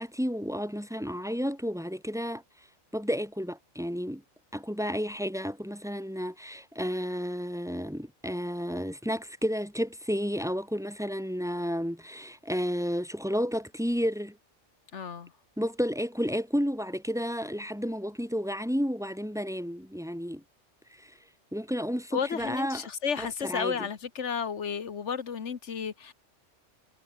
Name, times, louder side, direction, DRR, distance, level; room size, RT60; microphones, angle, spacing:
voice 1, 0.0-2.4 2.9-4.2 4.5-14.4 15.6-20.4 20.9-21.2 21.5-22.9 23.2-23.9, equal, ahead, 3.6 m, -31 dB
voice 2, 14.9-15.3 22.1-26.1, left 6 dB, 70° left, 1.5 m, -32 dB
omnidirectional pair, 1.3 m